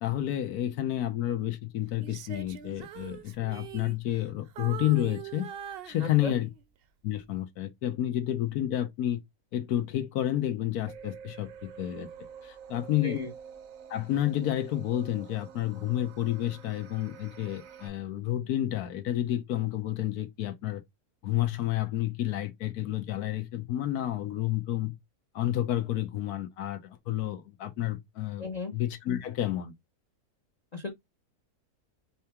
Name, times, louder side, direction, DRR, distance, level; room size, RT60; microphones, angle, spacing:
voice 1, 0.0-5.5 5.9-6.5 7.0-9.2 9.5-12.1 12.4-13.2 13.9-20.8 21.2-24.9 25.3-28.5 28.7-29.7, left 13 dB, 75° left, 1.3 m, -30 dB
Female singing, 2.0-4.3 4.6-6.6 7.1-7.4, right 10 dB, 85° right, 0.5 m, -42 dB
voice 2, 6.0-6.3 13.0-13.3 28.4-28.7 30.7-30.9, left 3 dB, 35° left, 0.7 m, -35 dB
sound 1, 10.9-17.9, right 7 dB, 65° right, 1.0 m, -48 dB
4.8 x 2.9 x 3.4 m
omnidirectional pair, 1.6 m